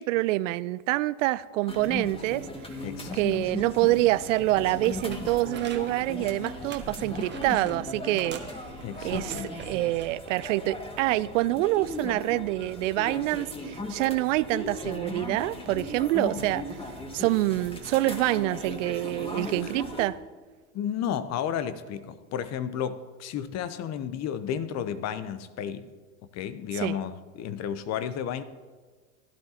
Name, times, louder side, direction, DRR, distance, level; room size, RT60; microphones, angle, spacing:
voice 1, 0.0-2.5 3.1-8.4 9.0-16.6 17.1-20.2 26.7-27.0, right 17 dB, 70° right, 0.5 m, -26 dB
sound 1, 1.7-20.1, left 1 dB, 15° left, 2.0 m, -37 dB
voice 2, 2.8-3.5 8.8-9.5 19.6-19.7 20.7-25.9 26.3-28.4, left 9 dB, 40° left, 0.9 m, -32 dB
sound 2, 4.5-6.0 6.4-7.8 8.2-10.1 10.6-10.8, right 5 dB, 25° right, 1.4 m, -45 dB
16.5 x 12.0 x 2.9 m
hypercardioid pair, 85°, 40 cm